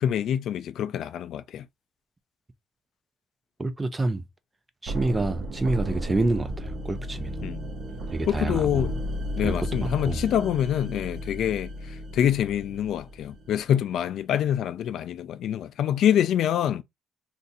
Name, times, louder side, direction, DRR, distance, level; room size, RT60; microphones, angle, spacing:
voice 1, 0.0-1.6 7.4-7.6 8.3-8.9 9.4-11.7 12.1-16.8, left 10 dB, 60° left, 0.3 m, -25 dB
voice 2, 3.6-4.2 4.8-7.3 8.1-8.9 9.4-10.2, right 2 dB, 15° right, 0.4 m, -27 dB
sound 1, 4.9-13.7, equal, 50° right, 0.7 m, -34 dB
2.6 x 2.5 x 3.9 m
cardioid pair, 145°, 0 cm